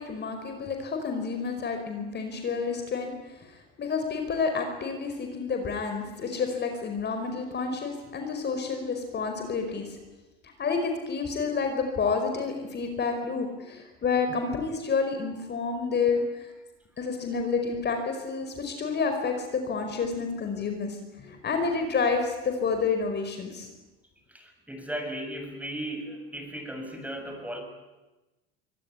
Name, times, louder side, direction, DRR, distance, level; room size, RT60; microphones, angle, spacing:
voice 1, 0.0-10.0 10.6-16.5 17.0-23.7, left 5 dB, 35° left, 5 dB, 5.0 m, -29 dB
voice 2, 24.3-27.6, right 1 dB, 5° right, 4 dB, 7.5 m, -36 dB
24.5 x 18.0 x 9.9 m, 1.1 s
hypercardioid pair, 85°, 30 cm